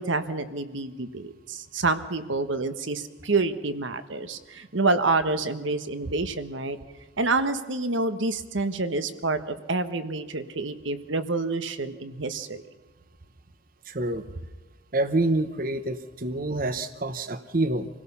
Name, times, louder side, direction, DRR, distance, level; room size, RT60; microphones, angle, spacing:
voice 1, 0.0-6.8 7.2-12.6, right 3 dB, 75° right, 10 dB, 1.3 m, -28 dB
voice 2, 13.9-14.2 14.9-17.9, right 2 dB, 45° right, 11 dB, 1.0 m, -27 dB
27.5 x 17.5 x 5.6 m, 1.2 s
head